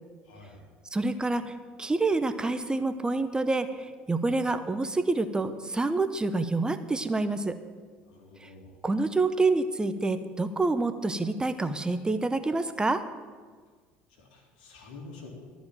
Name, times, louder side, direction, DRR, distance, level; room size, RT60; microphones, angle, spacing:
voice 1, 0.2-0.6 8.1-8.8 14.1-15.3, left 3 dB, 80° left, 1 dB, 2.5 m, -48 dB
voice 2, 0.9-1.5 1.8-7.6 8.4-8.5 8.8-13.0, right 3 dB, 15° right, 10 dB, 0.7 m, -27 dB
13.0 x 5.1 x 8.7 m, 1.5 s
hypercardioid pair, 70°, 5 cm